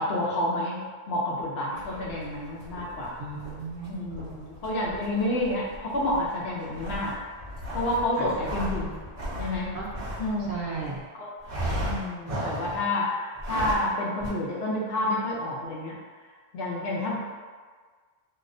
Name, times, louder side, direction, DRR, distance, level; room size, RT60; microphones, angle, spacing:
voice 1, 0.0-3.1 3.9-7.1 7.7-9.0 9.4-9.7 10.2-10.5 10.8-10.9 11.2-11.3 11.8-16.0 16.5-17.2, left 1 dB, 70° left, -4 dB, 0.8 m, -29 dB
sound 1, 1.7-11.0 11.4-12.9 13.3-13.9 14.2-14.3, equal, 45° right, 1.3 m, -36 dB
voice 2, 3.2-4.3 8.2-8.3 9.7-9.9 10.4-11.0, right 4 dB, 90° right, -4 dB, 0.9 m, -36 dB
2.7 x 2.1 x 2.5 m, 1.5 s
omnidirectional pair, 1.1 m